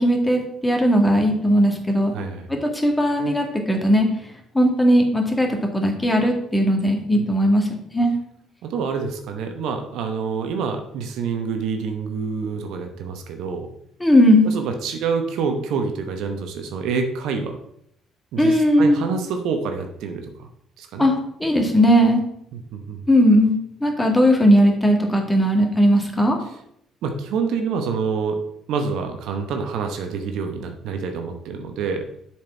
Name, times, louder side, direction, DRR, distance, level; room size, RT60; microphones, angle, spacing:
voice 1, 0.0-2.1 2.6-4.1 4.5-8.1 14.0-14.5 18.4-19.1 21.0-21.1 21.4-22.2 23.1-26.4, equal, 15° left, 2 dB, 1.8 m, -18 dB
voice 2, 2.1-2.5 7.1-7.2 8.6-13.7 14.4-17.6 18.3-20.5 20.8-21.1 22.5-23.0 27.0-28.4 28.7-32.0, right 5 dB, 70° right, 5 dB, 0.8 m, -27 dB
7.4 x 4.5 x 4.5 m, 0.73 s
hypercardioid pair, 50°, 0 cm